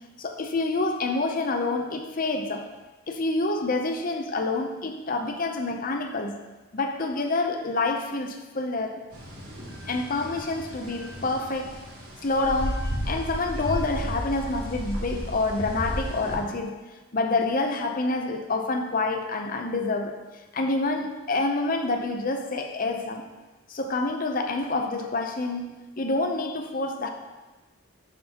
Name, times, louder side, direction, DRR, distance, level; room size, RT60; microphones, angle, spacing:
voice 1, 0.2-2.7 3.1-6.4 6.7-9.0 9.9-11.8 12.2-16.8 17.1-20.2 20.5-23.3 23.7-27.1, left 2 dB, 40° left, 5 dB, 0.6 m, -27 dB
sound 1, 9.1-16.4, equal, 65° right, 2.4 m, -33 dB
11.0 x 5.5 x 2.9 m, 1.2 s
head